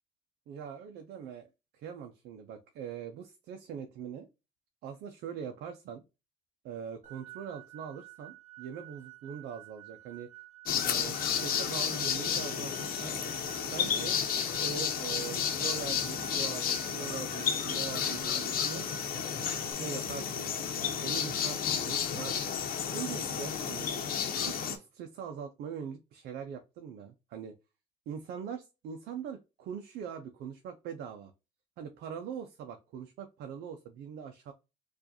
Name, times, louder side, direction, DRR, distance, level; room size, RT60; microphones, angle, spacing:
voice 1, 0.5-1.5 1.7-4.3 4.8-6.0 6.6-10.3 10.8-13.2 13.7-14.2 14.6-18.9 19.7-20.5 21.0-22.6 22.9-23.9 24.4-27.6 28.1-31.3 31.8-34.5, right 7 dB, 75° right, 5 dB, 0.6 m, -42 dB
sound 1, 7.0-19.7, right 18 dB, 45° right, 1.3 m, -52 dB
sound 2, 10.7-24.8, left 7 dB, 60° left, 0.9 m, -32 dB
4.6 x 2.5 x 2.7 m, 0.27 s
cardioid pair, 110°, 17 cm